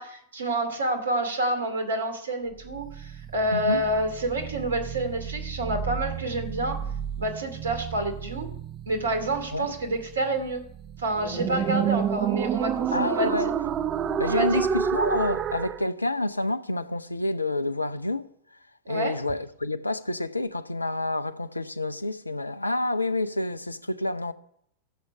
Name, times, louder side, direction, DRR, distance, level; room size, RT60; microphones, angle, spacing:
voice 1, 0.0-6.8 7.2-8.5 8.9-10.6 11.0-13.5 14.2-14.7 18.9-19.2, right 1 dB, 70° right, 2.4 m, -28 dB
sound 1, 2.6-15.8, right 8 dB, 30° right, 0.8 m, -30 dB
voice 2, 3.5-3.8 9.5-9.7 12.9-13.5 14.2-18.3 18.9-24.3, left 2 dB, 85° left, 0.7 m, -28 dB
12.5 x 7.7 x 9.5 m
figure-of-eight pair, 90°, 0 cm